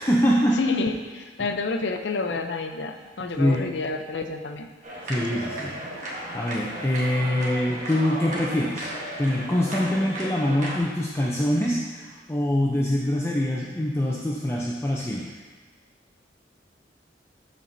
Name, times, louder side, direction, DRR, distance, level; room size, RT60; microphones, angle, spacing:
voice 1, 0.0-0.6 3.4-3.6 5.0-8.9 9.2-15.2, left 1 dB, 15° left, -3 dB, 0.5 m, -24 dB
voice 2, 0.5-4.7, left 3 dB, 80° left, 6 dB, 0.6 m, -29 dB
sound 1, 4.8-10.8, right 1 dB, 45° right, 1.3 m, -35 dB
12.0 x 4.3 x 2.7 m, 1.4 s
head